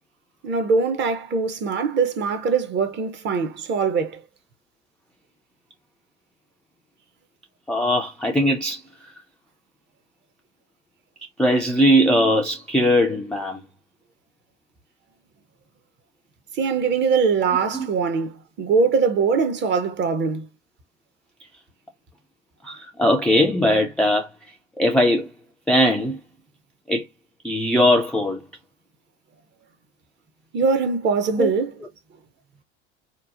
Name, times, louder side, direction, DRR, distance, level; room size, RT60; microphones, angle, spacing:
voice 1, 0.4-4.2 16.6-20.5 30.5-31.7, right 5 dB, 30° right, 0.6 m, -22 dB
voice 2, 7.7-8.8 11.4-13.6 17.7-17.9 22.6-24.3 24.8-25.3 25.7-26.2 26.9-27.1 27.4-28.4 31.4-31.5, equal, 5° left, 0.3 m, -20 dB
2.9 x 2.0 x 2.4 m
hypercardioid pair, 85°, 36 cm